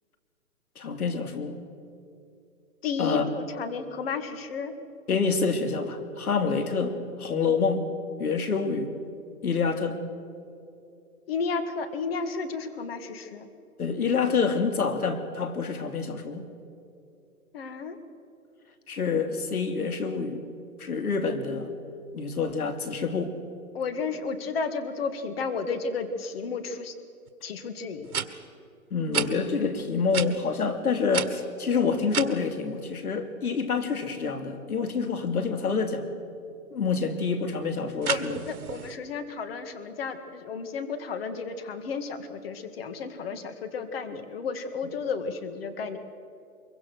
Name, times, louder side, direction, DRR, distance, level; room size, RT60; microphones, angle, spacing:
voice 1, 0.8-1.6 3.0-3.3 5.1-7.9 8.2-8.9 9.4-10.0 13.8-16.4 18.9-20.4 20.8-21.7 22.1-23.3 28.9-36.1 36.7-38.4, left 5 dB, 75° left, 8 dB, 3.0 m, -27 dB
voice 2, 2.8-4.7 11.3-13.5 17.5-18.0 23.7-26.9 27.4-28.1 38.1-46.0, left 5 dB, 40° left, 8 dB, 2.1 m, -32 dB
sound 1, 27.3-27.4 28.0-28.3 29.1-29.3 30.1-30.3 31.1-32.3 38.0-39.0, right 7 dB, 75° right, 1.8 m, -30 dB
24.0 x 23.0 x 6.4 m, 2.6 s
hypercardioid pair, 160°, 44 cm